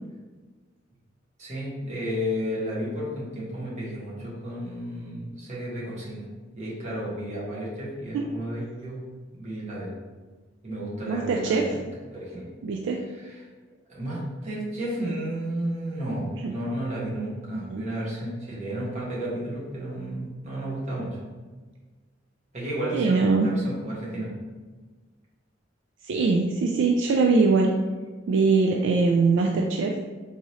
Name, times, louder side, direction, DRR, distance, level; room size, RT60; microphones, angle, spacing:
voice 1, 1.4-9.1 9.3-9.9 10.6-11.8 12.1-12.4 13.9-21.2 22.5-24.3, equal, 40° right, -6 dB, 1.2 m, -32 dB
voice 2, 11.1-11.8 12.6-13.0 16.4-16.5 17.5-17.9 22.9-23.5 26.0-27.7 28.3-30.0, right 4 dB, 65° right, 1 dB, 0.3 m, -22 dB
3.6 x 2.7 x 3.1 m, 1.4 s
head